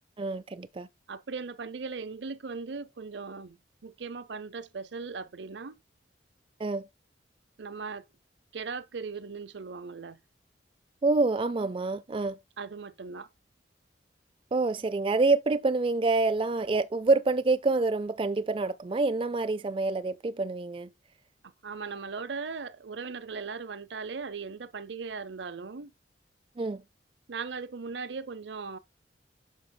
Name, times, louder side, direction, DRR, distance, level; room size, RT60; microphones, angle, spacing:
voice 1, 0.2-0.9 6.6-6.9 11.0-12.4 14.5-20.9 26.6-26.8, right 3 dB, 30° right, 0.3 m, -27 dB
voice 2, 1.1-3.6 3.8-5.8 7.6-8.0 8.5-10.2 12.6-13.3 21.4-25.9 27.3-28.8, right 4 dB, 70° right, 0.7 m, -38 dB
10.5 x 6.0 x 2.2 m
head